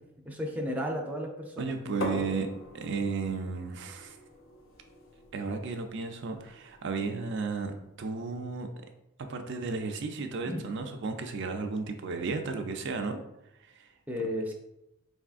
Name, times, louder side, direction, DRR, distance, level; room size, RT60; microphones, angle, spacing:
voice 1, 0.2-2.3 10.4-10.7 14.1-14.5, equal, 10° right, 0 dB, 0.5 m, -34 dB
voice 2, 1.6-2.5 2.7-4.2 5.3-8.7 9.3-13.2 13.6-13.9, right 4 dB, 60° right, 5 dB, 0.4 m, -34 dB
sound 1, 2.0-7.7, left 1 dB, 70° left, 0.7 m, -42 dB
4.7 x 3.5 x 2.5 m, 0.87 s
head